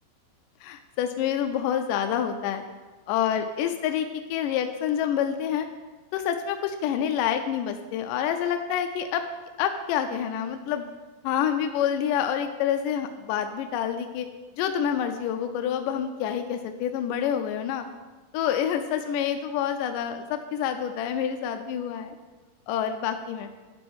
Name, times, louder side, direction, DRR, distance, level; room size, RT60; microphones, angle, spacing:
voice 1, 0.6-2.6 3.1-5.7 6.1-9.2 9.6-10.9 11.2-14.3 14.6-17.9 18.3-22.2 22.7-23.5, left 9 dB, 80° left, 6 dB, 1.9 m, -27 dB
11.5 x 4.3 x 6.3 m, 1.3 s
omnidirectional pair, 4.2 m